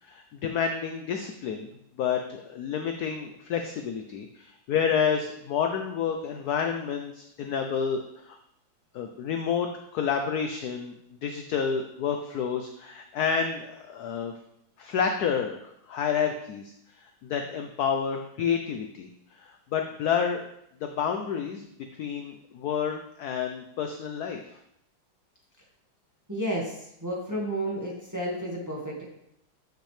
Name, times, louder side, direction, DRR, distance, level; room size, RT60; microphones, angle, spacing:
voice 1, 0.0-1.7 2.0-8.4 8.9-10.9 11.2-14.3 14.8-20.5 20.8-21.7 22.0-24.6, left 7 dB, 70° left, 5 dB, 0.9 m, -29 dB
voice 2, 26.3-29.0, right 1 dB, 10° right, -3 dB, 1.2 m, -32 dB
8.1 x 6.5 x 3.2 m, 0.77 s
omnidirectional pair, 2.2 m